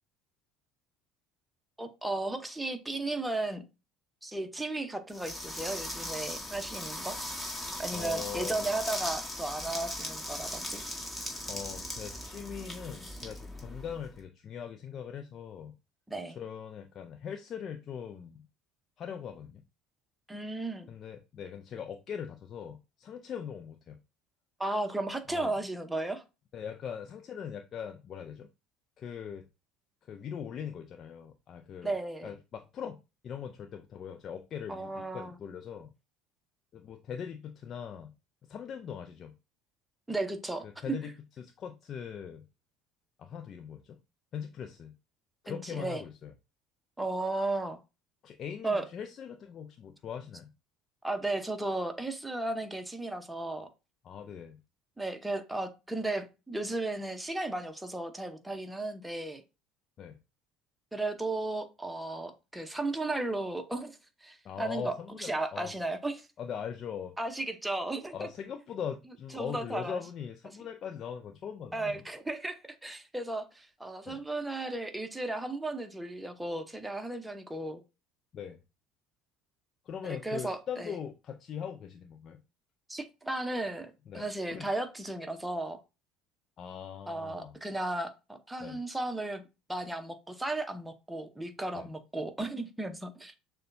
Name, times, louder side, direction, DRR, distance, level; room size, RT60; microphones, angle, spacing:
voice 1, 1.8-3.6 4.2-7.1 7.8-10.8 16.1-16.4 20.3-20.9 24.6-26.2 31.8-32.3 34.7-35.4 40.1-41.0 45.5-46.0 47.0-47.8 48.6-48.8 51.0-53.7 55.0-59.4 60.9-66.3 67.2-68.3 69.3-70.0 71.7-77.8 80.0-80.9 82.9-85.8 87.1-89.4 89.7-93.4, right 2 dB, 10° right, 0.8 m, -35 dB
Flowing Sand, 5.1-14.1, left 1 dB, 15° left, 1.7 m, -39 dB
voice 2, 7.9-8.7 11.5-15.8 16.3-18.5 19.0-19.6 20.9-24.0 25.3-25.6 26.5-28.5 29.0-29.5 30.0-32.0 32.2-35.9 36.7-38.1 38.4-39.3 40.6-42.5 43.2-44.0 44.3-45.0 45.4-46.3 48.2-50.5 54.0-54.6 60.0-60.2 64.4-65.7 66.4-67.2 68.1-72.0 74.1-74.2 78.3-78.6 79.9-82.4 84.1-84.7 86.6-87.6 88.6-88.8 91.7-91.9, left 8 dB, 45° left, 0.4 m, -41 dB
6.5 x 2.2 x 2.6 m
hypercardioid pair, 70°, 0 cm